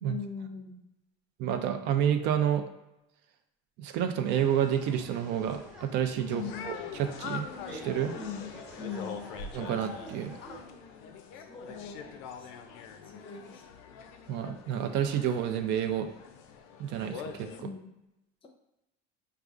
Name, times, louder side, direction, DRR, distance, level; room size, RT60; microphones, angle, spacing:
voice 1, 0.0-0.8 6.2-6.6 8.1-8.5 8.8-9.3 11.5-12.5 13.1-13.6 17.6-17.9, left 6 dB, 25° left, 2 dB, 0.6 m, -41 dB
voice 2, 1.4-2.6 3.8-8.1 9.5-10.4 14.3-16.1 16.8-17.7, right 9 dB, 60° right, 7 dB, 0.4 m, -29 dB
sound 1, 4.2-10.6, equal, 5° right, 0.9 m, -48 dB
sound 2, 6.3-17.6, left 6 dB, 80° left, 0.4 m, -44 dB
4.8 x 2.3 x 2.4 m, 0.91 s
cardioid pair, 130°, 20 cm